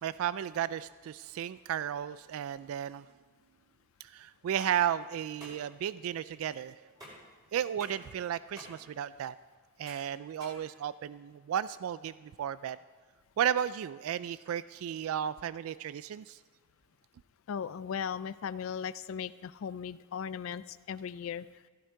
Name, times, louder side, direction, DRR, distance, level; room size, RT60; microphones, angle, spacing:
voice 1, 0.0-3.1 4.0-6.9 7.5-9.3 9.8-12.8 13.4-16.4, right 9 dB, 85° right, 16 dB, 0.3 m, -34 dB
sound 1, 4.3-11.3, equal, 20° right, 4.1 m, -52 dB
voice 2, 17.5-21.4, left 7 dB, 80° left, 15 dB, 0.4 m, -37 dB
15.0 x 11.0 x 4.5 m, 1.5 s
head